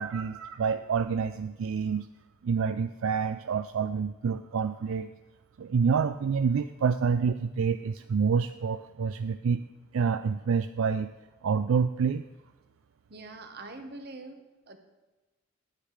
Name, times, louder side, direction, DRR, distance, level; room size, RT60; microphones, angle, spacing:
voice 1, 0.0-2.1 2.4-5.1 5.6-9.6 9.9-11.1 11.4-12.2, right 6 dB, 70° right, 10 dB, 0.4 m, -27 dB
voice 2, 13.1-14.8, right 2 dB, 45° right, 6 dB, 1.2 m, -44 dB
10.5 x 9.6 x 4.9 m, 1.1 s
head